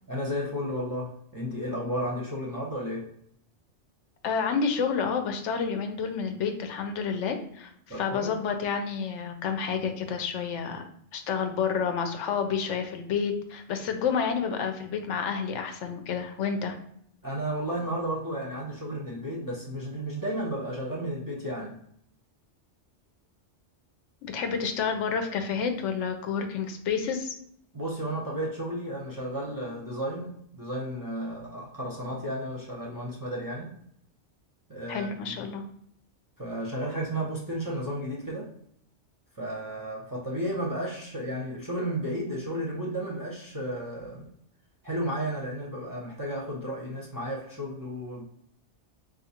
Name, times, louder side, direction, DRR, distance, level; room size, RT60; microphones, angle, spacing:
voice 1, 0.1-3.1 7.9-8.3 17.2-21.8 27.7-33.7 34.7-35.4 36.4-38.5 39.3-44.3 44.8-48.3, equal, 25° right, -4 dB, 0.5 m, -33 dB
voice 2, 4.2-7.7 8.0-10.8 11.1-16.8 24.2-27.4 34.9-35.6, left 6 dB, 85° left, 6 dB, 0.9 m, -29 dB
3.8 x 2.4 x 2.8 m, 0.68 s
omnidirectional pair, 1.2 m